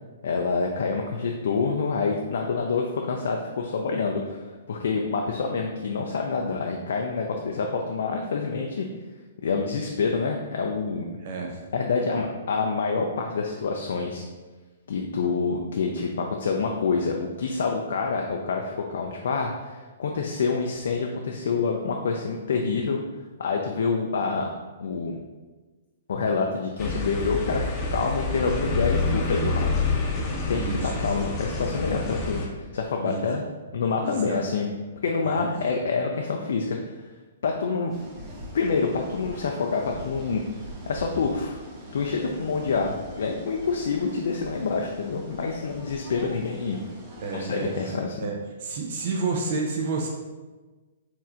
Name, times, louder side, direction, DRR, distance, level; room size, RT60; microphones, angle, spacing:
voice 1, 0.2-8.9 9.4-11.0 11.7-14.2 14.9-23.0 23.4-24.5 24.8-25.2 26.1-29.9 30.5-33.5 33.7-34.7 35.0-37.1 37.4-38.0 38.5-40.4 40.9-41.6 41.9-46.8 47.3-48.3, left 4 dB, 60° left, 1 dB, 0.3 m, -27 dB
voice 2, 11.2-11.6 30.5-31.1 33.0-33.3 34.0-34.4 35.3-35.4 47.2-47.7 48.2-50.1, right 4 dB, 50° right, 1 dB, 0.5 m, -30 dB
sound 1, 26.8-32.5, left 3 dB, 25° left, 0.7 m, -27 dB
sound 2, 37.9-47.9, right 1 dB, 25° right, 0.9 m, -42 dB
4.4 x 3.1 x 2.5 m, 1.3 s
figure-of-eight pair, 115°, 0 cm